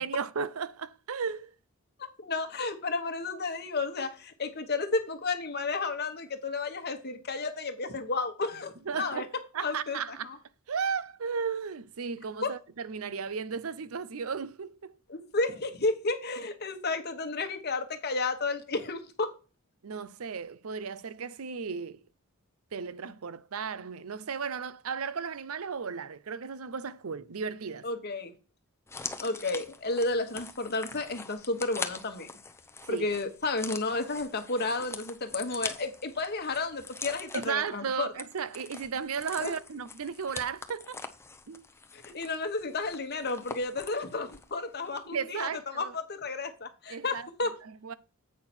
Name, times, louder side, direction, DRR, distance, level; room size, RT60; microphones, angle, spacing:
voice 1, 0.0-1.5 8.9-10.3 10.7-15.0 19.8-22.0 22.7-27.9 32.9-33.1 37.3-41.0 41.5-41.7 45.1-46.0 46.9-47.3 47.6-47.9, right 6 dB, 75° right, 0.6 m, -35 dB
voice 2, 2.0-9.3 9.6-10.0 10.2-10.4 12.4-12.5 15.1-19.3 27.8-28.3 29.2-32.3 32.9-38.1 39.4-39.5 41.9-47.5, left 3 dB, 50° left, 1.3 m, -32 dB
sound 1, 28.9-44.6 44.8-45.0, left 4 dB, 10° left, 0.7 m, -43 dB
8.4 x 5.7 x 4.3 m
head